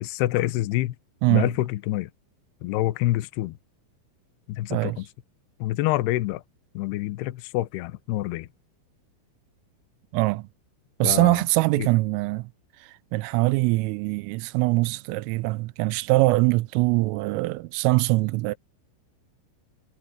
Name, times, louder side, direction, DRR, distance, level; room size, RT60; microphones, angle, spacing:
voice 1, 0.0-0.9 1.3-2.1 2.6-3.5 4.5-5.1 5.6-6.4 6.7-8.5 11.0-11.4 11.8-11.9, left 16 dB, 80° left, 2.4 m, -27 dB
voice 2, 4.7-5.0 10.1-10.5 11.0-12.5 13.1-18.6, right 22 dB, 85° right, 3.3 m, -23 dB
omnidirectional pair, 5.8 m